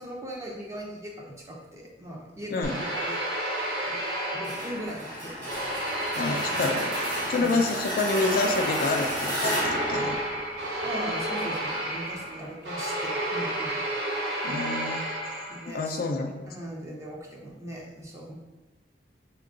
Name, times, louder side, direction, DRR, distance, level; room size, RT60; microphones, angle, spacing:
voice 1, 0.0-3.3 3.9-4.0 4.3-5.5 6.3-6.6 7.3-7.6 10.8-13.8 15.5-16.0 16.5-18.3, right 1 dB, 15° right, -2 dB, 0.6 m, -39 dB
voice 2, 2.5-2.8 6.2-6.9 7.2-10.2 14.4-15.0 15.7-16.5, left 3 dB, 55° left, 4 dB, 0.3 m, -28 dB
sound 1, 2.6-5.0 5.5-15.8, right 1 dB, 75° right, 0.9 m, -31 dB
sound 2, 4.4-11.2, equal, 50° right, 1.0 m, -32 dB
3.7 x 2.2 x 3.6 m, 1.1 s
head